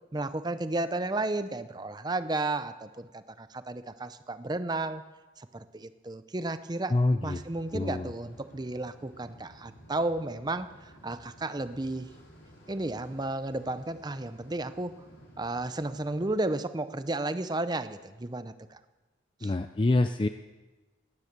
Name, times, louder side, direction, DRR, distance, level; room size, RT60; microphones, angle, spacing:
voice 1, 0.1-5.0 5.4-6.9 7.2-12.1 12.7-15.0 15.4-18.8 19.4-19.5, right 2 dB, 20° right, 12 dB, 0.6 m, -33 dB
voice 2, 6.9-7.4 7.7-8.1 19.4-20.3, left 2 dB, 25° left, 8 dB, 0.4 m, -26 dB
sound 1, 7.2-16.4, equal, 80° left, 5.7 m, -54 dB
18.0 x 9.7 x 6.7 m, 1.2 s
head